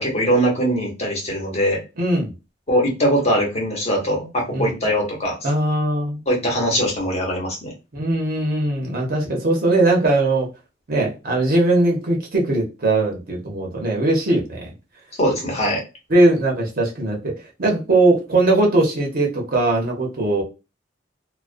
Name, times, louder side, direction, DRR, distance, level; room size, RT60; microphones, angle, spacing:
voice 1, 0.0-1.8 2.7-5.4 6.3-7.7 15.2-15.8, equal, 35° left, -1 dB, 0.9 m, -21 dB
voice 2, 2.0-2.3 4.5-4.7 5.4-6.2 7.9-10.5 10.9-14.7 16.1-17.3 17.6-20.4, right 2 dB, 50° right, 0 dB, 0.6 m, -20 dB
2.3 x 2.2 x 2.4 m, 0.28 s
head